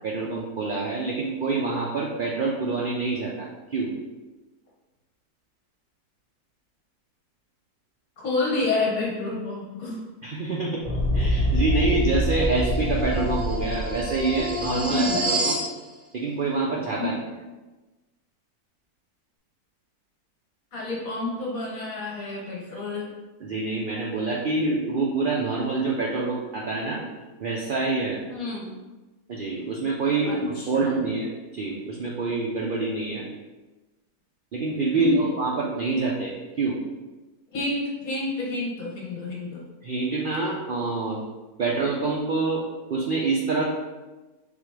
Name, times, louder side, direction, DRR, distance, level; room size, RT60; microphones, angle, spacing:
voice 1, 0.0-3.9 10.2-10.8 11.1-15.6 16.1-17.1 23.4-27.0 27.4-28.2 29.3-31.3 31.5-33.2 34.5-36.8 39.8-41.2 41.6-42.6 42.9-43.6, right 3 dB, 75° right, -3 dB, 0.4 m, -26 dB
voice 2, 8.2-10.0 14.7-15.2 17.0-17.1 20.7-23.1 28.3-28.7 30.2-30.9 35.0-35.3 37.5-39.6, left 2 dB, 65° left, -3 dB, 1.5 m, -29 dB
sound 1, 10.8-15.7, equal, 40° right, 1.7 m, -25 dB
3.9 x 2.9 x 4.7 m, 1.2 s
omnidirectional pair, 1.6 m